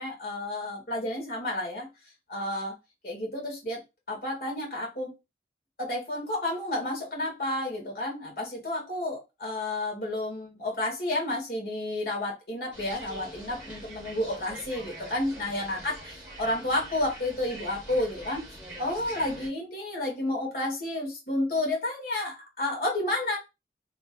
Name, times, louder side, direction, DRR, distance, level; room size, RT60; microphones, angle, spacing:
voice 1, 0.0-1.9 2.3-2.7 3.0-3.8 4.1-5.1 5.8-18.4 18.8-23.4, left 1 dB, 55° left, 2.1 m, -31 dB
sound 1, 12.7-19.5, right 1 dB, 10° right, 2.0 m, -44 dB
4.2 x 3.3 x 2.4 m
head